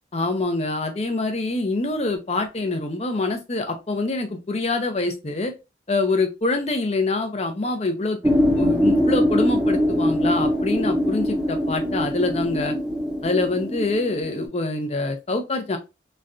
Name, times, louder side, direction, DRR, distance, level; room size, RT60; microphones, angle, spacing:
voice 1, 0.1-5.5 5.9-12.8 13.2-15.8, left 2 dB, 35° left, 5 dB, 0.6 m, -25 dB
sound 1, 8.2-14.5, equal, 5° right, 0.7 m, -22 dB
3.1 x 2.3 x 2.5 m, 0.25 s
head